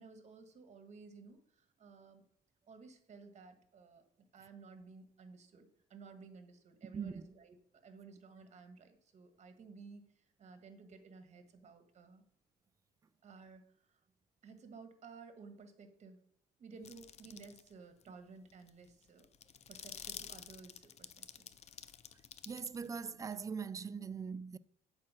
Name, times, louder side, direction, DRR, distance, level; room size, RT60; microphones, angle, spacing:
voice 1, 0.0-2.2 2.7-7.6 7.8-12.2 13.2-13.6 13.9-14.0 14.4-16.2 16.6-19.3 19.7-21.6, right 4 dB, 40° right, 1.3 m, -55 dB
sound 1, 16.9-17.7 18.0-18.1 18.5-23.4, left 8 dB, 40° left, 0.5 m, -50 dB
voice 2, 22.5-24.6, right 6 dB, 20° right, 0.3 m, -41 dB
8.5 x 4.4 x 6.0 m
cardioid pair, 110°, 17 cm